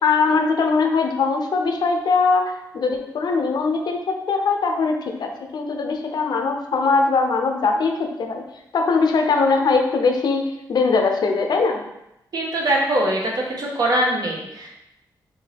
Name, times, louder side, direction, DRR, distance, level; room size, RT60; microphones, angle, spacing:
voice 1, 0.0-8.4 8.7-11.8, left 4 dB, 65° left, 4 dB, 0.7 m, -21 dB
voice 2, 12.3-14.7, right 1 dB, 55° right, -2 dB, 1.2 m, -22 dB
5.6 x 2.7 x 3.5 m, 0.86 s
wide cardioid pair, 120°, 8 cm